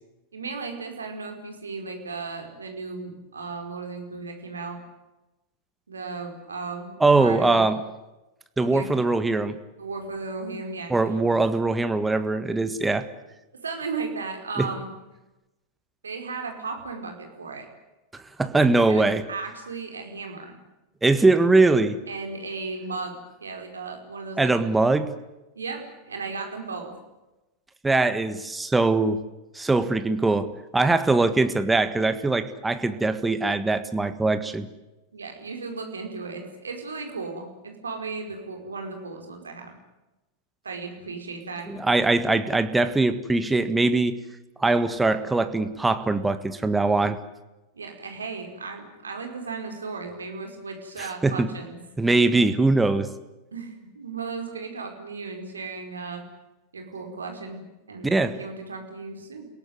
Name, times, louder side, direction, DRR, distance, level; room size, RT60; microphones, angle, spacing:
voice 1, 0.3-4.8 5.9-7.7 8.6-8.9 9.8-10.9 13.6-14.9 16.0-17.7 18.9-20.5 22.1-23.1 23.4-24.5 25.5-26.9 35.1-39.7 40.6-41.7 47.7-51.8 53.5-56.2 56.7-57.6 57.9-59.5, right 4 dB, 75° right, 4 dB, 5.0 m, -35 dB
voice 2, 7.0-7.8 8.6-9.6 10.9-13.1 14.6-14.7 18.4-19.2 21.0-22.0 24.4-25.1 27.8-29.2 29.5-34.7 41.7-44.2 44.6-47.2 51.0-51.5 52.0-53.1 58.0-58.4, right 3 dB, 10° right, 10 dB, 1.6 m, -22 dB
29.0 x 17.5 x 9.6 m, 1.0 s
figure-of-eight pair, 90°, 0 cm